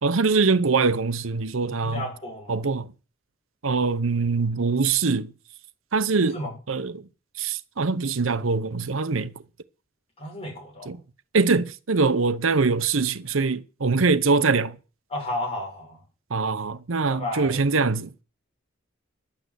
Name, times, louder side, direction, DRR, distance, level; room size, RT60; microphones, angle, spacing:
voice 1, 0.0-2.0 2.5-2.9 3.6-5.3 5.9-6.4 6.7-7.0 7.4-9.3 10.9-11.0 11.3-14.8 16.3-18.1, right 4 dB, 80° right, 0.8 m, -23 dB
voice 2, 1.8-2.6 6.3-6.5 10.2-11.0 15.1-16.0 17.1-17.6, left 1 dB, 30° left, 6.9 m, -33 dB
11.5 x 8.8 x 8.0 m
head